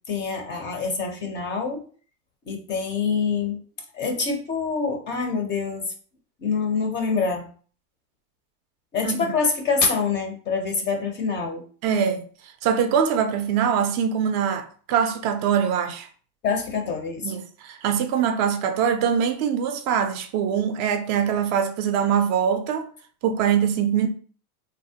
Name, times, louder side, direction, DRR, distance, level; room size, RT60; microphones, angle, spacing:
voice 1, 0.1-1.8 2.5-3.6 3.9-5.9 6.4-7.5 8.9-11.6 16.4-17.3, left 5 dB, 25° left, 0.5 m, -25 dB
voice 2, 11.8-12.3 12.6-16.1 17.2-22.9 23.2-24.1, right 8 dB, 35° right, 0.4 m, -23 dB
3.3 x 2.1 x 2.7 m
supercardioid pair, 115°, 46 cm